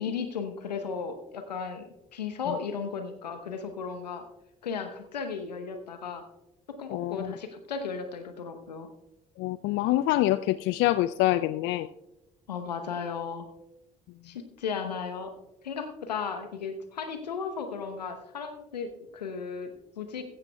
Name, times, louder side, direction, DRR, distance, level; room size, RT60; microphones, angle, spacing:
voice 1, 0.0-4.2 4.6-6.2 6.8-8.9 12.5-13.5 14.2-15.3 15.6-20.2, left 5 dB, 90° left, 7 dB, 0.9 m, -35 dB
voice 2, 6.9-7.4 9.4-11.9, left 15 dB, 65° left, 14 dB, 0.4 m, -26 dB
15.0 x 14.0 x 2.2 m, 0.94 s
hypercardioid pair, 45°, 21 cm